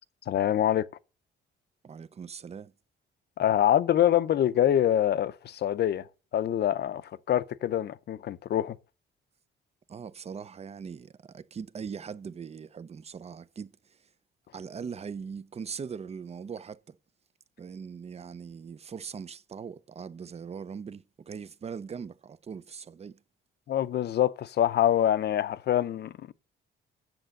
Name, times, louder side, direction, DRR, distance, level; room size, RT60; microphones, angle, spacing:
voice 1, 0.3-0.9 3.4-6.1 6.3-8.8 23.7-26.3, left 11 dB, 55° left, 0.6 m, -25 dB
voice 2, 1.8-2.7 9.9-14.0 14.5-17.0 17.6-23.2, right 6 dB, 30° right, 0.5 m, -40 dB
7.8 x 7.1 x 6.5 m
cardioid pair, 90°, 20 cm